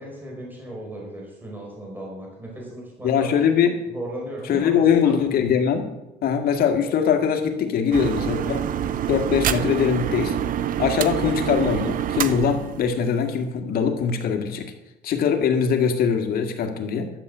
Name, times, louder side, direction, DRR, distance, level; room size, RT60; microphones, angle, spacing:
voice 1, 0.0-3.3 3.9-5.2, right 1 dB, 10° right, -2 dB, 4.9 m, -36 dB
voice 2, 3.0-3.8 4.5-5.9 6.2-8.7 9.1-10.4 10.8-14.7 15.0-17.1, left 7 dB, 60° left, 5 dB, 1.9 m, -22 dB
sound 1, 7.9-13.4, right 9 dB, 55° right, 0.6 m, -26 dB
12.0 x 7.4 x 6.7 m, 0.95 s
cardioid pair, 110°, 17 cm